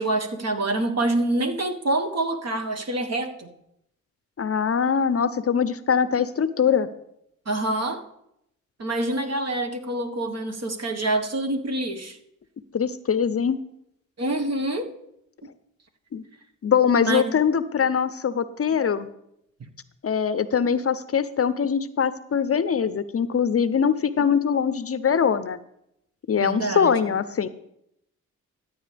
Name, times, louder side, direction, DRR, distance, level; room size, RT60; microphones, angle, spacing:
voice 1, 0.0-3.5 7.4-8.0 8.8-12.2 14.2-14.9 17.0-17.2 26.4-26.9, right 2 dB, 50° right, 5 dB, 1.5 m, -26 dB
voice 2, 4.4-6.9 12.7-13.6 16.1-16.2 16.6-19.1 20.0-25.6 26.3-27.5, left 7 dB, 40° left, 14 dB, 0.6 m, -22 dB
14.5 x 8.6 x 3.4 m, 0.78 s
supercardioid pair, 50°, 34 cm